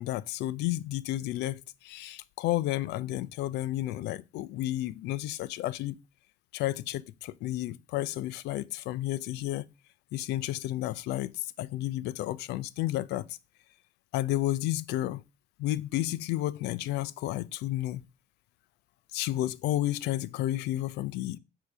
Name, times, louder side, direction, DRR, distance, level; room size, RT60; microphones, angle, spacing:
voice 1, 0.0-6.0 6.5-9.6 10.1-13.4 14.1-15.2 15.6-18.0 19.1-21.4, left 15 dB, 85° left, 0.5 m, -31 dB
8.2 x 2.8 x 6.0 m
cardioid pair, 110°, 17 cm